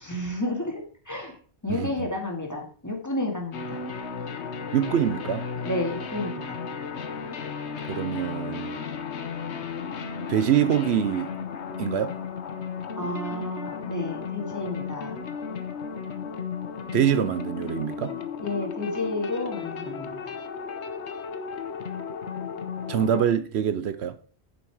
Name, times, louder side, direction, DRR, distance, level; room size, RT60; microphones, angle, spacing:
voice 1, 0.0-1.4 1.6-3.8 5.6-6.6 13.0-15.2 18.4-20.4, left 2 dB, 15° left, 2.3 m, -31 dB
voice 2, 1.7-2.1 4.7-5.5 7.9-8.8 10.3-11.3 11.8-12.1 16.9-18.1 22.9-24.2, right 9 dB, 75° right, 0.9 m, -25 dB
sound 1, 3.5-23.3, left 6 dB, 85° left, 1.3 m, -34 dB
9.4 x 7.2 x 4.8 m
omnidirectional pair, 1.1 m